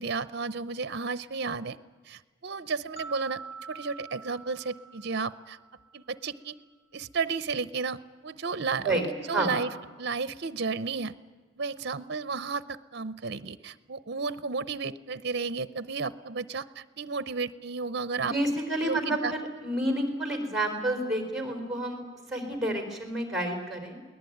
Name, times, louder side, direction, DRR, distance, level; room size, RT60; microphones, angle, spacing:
voice 1, 0.0-1.8 2.1-3.4 3.7-5.6 5.9-6.5 6.9-9.7 10.0-11.2 11.6-19.3, right 4 dB, 55° right, 16 dB, 0.7 m, -33 dB
sound 1, 3.0-6.1, right 5 dB, 30° left, 1.8 m, -45 dB
voice 2, 18.2-22.0 22.3-24.0, right 1 dB, ahead, 4 dB, 3.9 m, -29 dB
22.5 x 18.5 x 9.3 m, 1.4 s
head